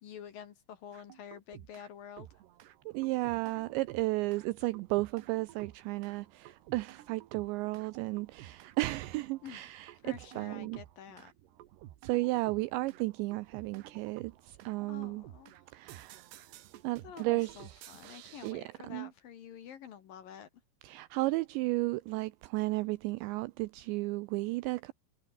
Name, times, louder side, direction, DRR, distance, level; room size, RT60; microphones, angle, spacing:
voice 1, 0.0-2.3 9.4-9.7 10.0-11.3 14.9-15.6 17.0-20.5, left 9 dB, 60° left, 2.8 m, -48 dB
sound 1, 0.9-1.9 2.2-18.5, right 14 dB, 70° right, 3.2 m, -53 dB
voice 2, 2.9-10.8 12.0-15.2 15.7-16.3 16.8-17.5 18.4-19.1 20.8-24.9, right 21 dB, 85° right, 2.6 m, -33 dB
omnidirectional pair, 5.6 m